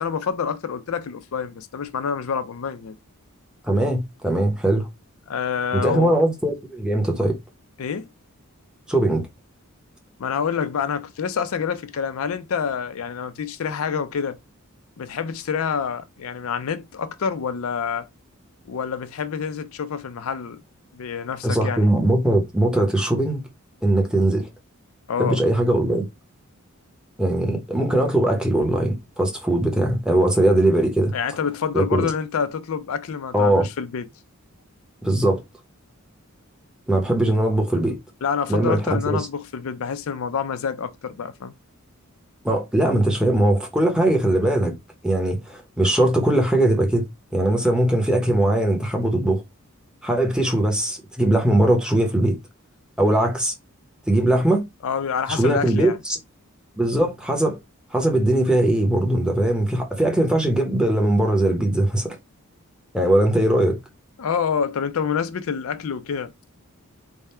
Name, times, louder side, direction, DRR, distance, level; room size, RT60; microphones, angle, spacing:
voice 1, 0.0-3.0 5.3-6.2 7.8-8.1 10.2-14.4 15.0-18.1 18.7-20.6 20.9-21.9 25.1-25.4 31.1-34.1 38.2-41.5 54.8-56.0 64.2-66.3, left 6 dB, 70° left, 0.4 m, -27 dB
voice 2, 3.6-4.9 5.7-7.3 8.9-9.2 21.4-23.4 23.8-24.5 25.2-26.1 27.2-31.1 31.7-32.1 33.3-33.7 35.0-35.4 36.9-38.0 38.5-39.3 42.4-44.8 45.0-49.4 50.0-52.4 53.0-53.5 54.1-54.6 55.3-56.2 56.8-57.6 57.9-62.2 62.9-63.8, right 1 dB, 5° right, 0.8 m, -20 dB
3.6 x 2.1 x 4.2 m
head